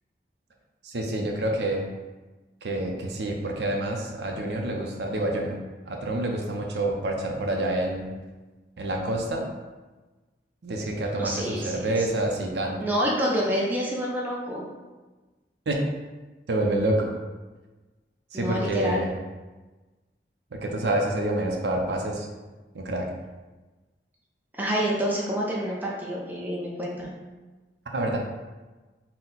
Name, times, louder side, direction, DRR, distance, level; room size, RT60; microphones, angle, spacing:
voice 1, 0.8-1.9 2.6-5.6 5.9-8.1 8.8-9.5 10.6-12.8 15.7-15.8 16.5-17.1 18.3-19.1 20.5-22.3 22.7-23.1 27.9-28.2, right 1 dB, 75° right, 1 dB, 0.5 m, -27 dB
voice 2, 11.2-12.1 12.8-14.6 18.3-19.0 24.5-27.1, equal, 10° right, -4 dB, 0.5 m, -28 dB
4.2 x 2.1 x 3.8 m, 1.2 s
head